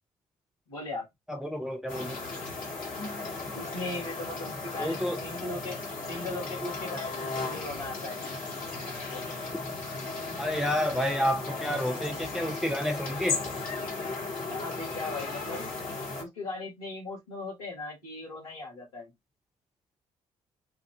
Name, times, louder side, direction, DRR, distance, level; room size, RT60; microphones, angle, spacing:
voice 1, 0.7-1.0 3.5-5.8 6.1-8.2 9.1-9.3 14.5-15.6 16.2-19.1, left 2 dB, 80° left, 1.4 m, -38 dB
voice 2, 1.3-2.2 4.8-5.2 10.4-13.4, equal, 5° right, 0.8 m, -30 dB
sound 1, 1.9-16.2, left 3 dB, 50° left, 1.5 m, -36 dB
5.1 x 2.5 x 2.3 m
figure-of-eight pair, 45°, 19 cm